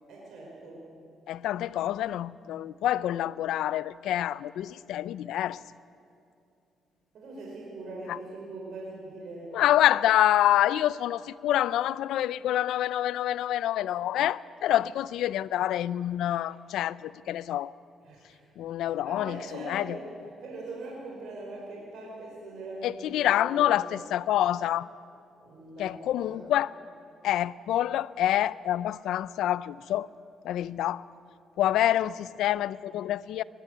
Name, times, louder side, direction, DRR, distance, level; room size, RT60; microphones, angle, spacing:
voice 1, 0.1-0.9 7.1-9.6 16.2-16.4 18.0-18.4 18.8-23.7 25.4-26.5 31.5-31.8, right 2 dB, 70° right, 5.2 m, -42 dB
voice 2, 1.3-5.6 8.1-8.2 9.5-17.7 18.6-19.4 19.7-20.0 22.8-24.9 25.8-26.7 27.2-30.1 30.4-31.0 31.6-33.4, left 12 dB, 85° left, 0.4 m, -27 dB
21.5 x 13.0 x 9.4 m
cardioid pair, 90°, 0 cm